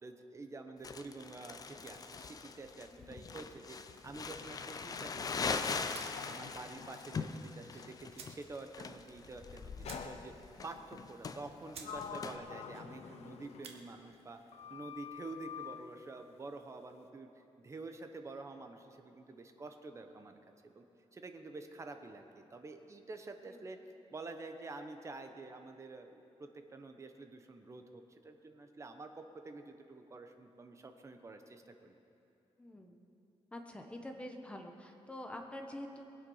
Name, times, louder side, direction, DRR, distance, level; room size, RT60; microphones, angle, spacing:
voice 1, 0.0-3.8 4.0-5.9 6.3-10.3 10.6-14.4 14.7-20.4 20.6-20.8 21.1-23.8 24.1-32.0, right 3 dB, 25° right, 6 dB, 0.9 m, -48 dB
Crumpling crinkling, 0.8-12.4, left 5 dB, 35° left, 0.6 m, -41 dB
voice 2, 2.9-3.4 23.5-23.6 32.6-33.0 33.5-36.0, left 1 dB, 10° left, 3 dB, 1.1 m, -47 dB
Sliding door, 4.0-8.0 9.8-10.7 11.4-14.3 14.5-15.8, left 7 dB, 80° left, 0.8 m, -49 dB
sound 1, 5.9-6.3 7.6-7.7 8.1-8.5 8.8-8.9 9.2-9.3 9.8-10.4 10.8-10.9 11.3-11.4 11.7-12.0 12.3-12.7 13.4-13.8, right 6 dB, 65° right, 1.3 m, -51 dB
22.0 x 8.1 x 5.6 m, 2.8 s
wide cardioid pair, 155°, 11 cm